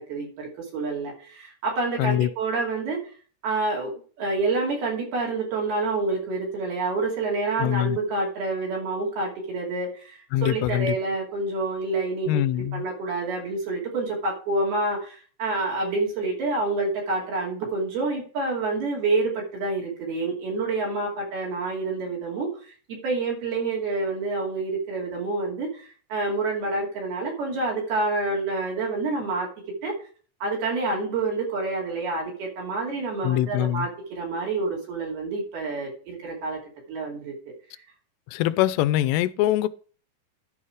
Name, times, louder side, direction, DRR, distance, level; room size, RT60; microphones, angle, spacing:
voice 1, 0.0-3.0 3.4-12.5 12.7-29.5 29.8-29.9 30.4-36.6 36.9-37.3, right 3 dB, 70° right, 4.6 m, -28 dB
voice 2, 2.0-2.3 7.6-8.0 10.3-11.0 12.3-12.8 33.2-33.9 38.3-39.7, left 14 dB, 85° left, 2.7 m, -23 dB
11.0 x 5.6 x 4.8 m
omnidirectional pair, 4.8 m